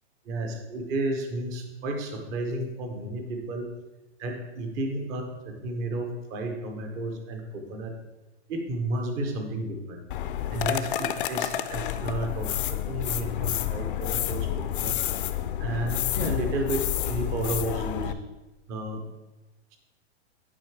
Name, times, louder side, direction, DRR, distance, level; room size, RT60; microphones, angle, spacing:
voice 1, 0.3-3.7 4.2-7.9 8.5-10.0 10.5-15.0 15.6-18.1 18.7-19.0, right 2 dB, 10° right, 4 dB, 0.3 m, -32 dB
sound 1, 10.1-18.1, left 11 dB, 50° left, 0.5 m, -29 dB
9.6 x 4.2 x 4.5 m, 1.1 s
hypercardioid pair, 150°, 35 cm